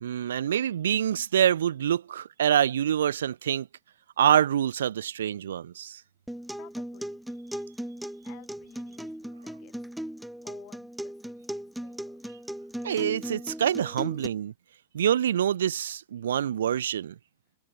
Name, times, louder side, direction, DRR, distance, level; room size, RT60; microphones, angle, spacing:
voice 1, 0.0-3.7 4.2-6.0 12.8-14.5 14.9-17.1, right 10 dB, 75° right, 0.5 m, -26 dB
Acoustic guitar, 6.3-14.3, equal, ahead, 2.3 m, -38 dB
voice 2, 6.5-7.2 7.5-7.7 8.2-9.8 10.4-12.2, left 25 dB, 45° left, 5.6 m, -55 dB
hypercardioid pair, 115°, 0 cm